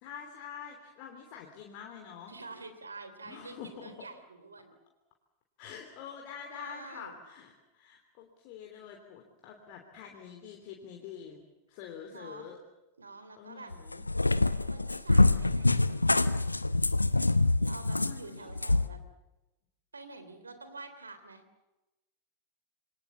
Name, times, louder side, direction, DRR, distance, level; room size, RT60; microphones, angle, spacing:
voice 1, 0.0-2.3 3.2-3.8 5.6-11.4 11.7-12.6 13.4-14.0 18.0-18.5, left 8 dB, 45° left, 2 dB, 3.4 m, -46 dB
voice 2, 2.3-4.7 6.5-7.1 12.1-12.5 13.0-13.7 14.7-16.4 17.6-19.0 19.9-21.4, right 3 dB, 75° right, 9 dB, 3.4 m, -47 dB
Cat, 13.7-18.9, left 2 dB, 85° left, 0.8 m, -25 dB
28.0 x 23.5 x 7.3 m, 1.0 s
figure-of-eight pair, 90°, 0 cm